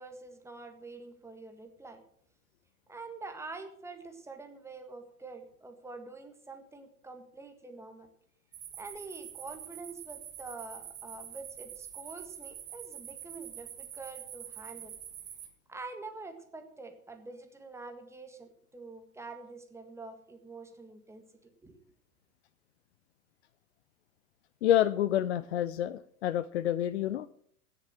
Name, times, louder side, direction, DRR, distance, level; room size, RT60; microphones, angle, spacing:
voice 1, 0.0-2.0 2.9-8.1 8.8-15.0 15.7-21.2 21.6-21.8, right 3 dB, 5° right, 6 dB, 1.6 m, -46 dB
sound 1, 8.5-15.5, right 10 dB, 20° right, 1.9 m, -46 dB
voice 2, 24.6-27.3, left 11 dB, 45° left, 17 dB, 0.5 m, -28 dB
16.5 x 6.8 x 7.4 m, 0.65 s
figure-of-eight pair, 105°, 46 cm